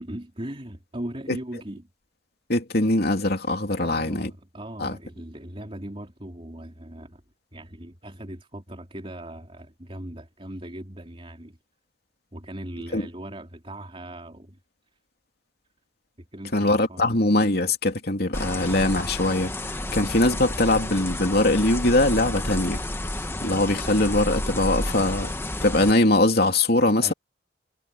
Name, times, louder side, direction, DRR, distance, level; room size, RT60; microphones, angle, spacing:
voice 1, 0.0-1.9 3.8-7.2 7.5-11.6 12.3-14.6 16.2-17.2 23.3-23.4 27.0-27.1, right 1 dB, 30° right, 3.8 m, -39 dB
voice 2, 2.5-4.3 4.8-5.0 12.9-13.0 16.5-22.8 23.4-25.3 25.6-27.1, left 2 dB, 55° left, 3.1 m, -22 dB
sound 1, 18.3-25.9, left 1 dB, 15° left, 1.3 m, -30 dB
head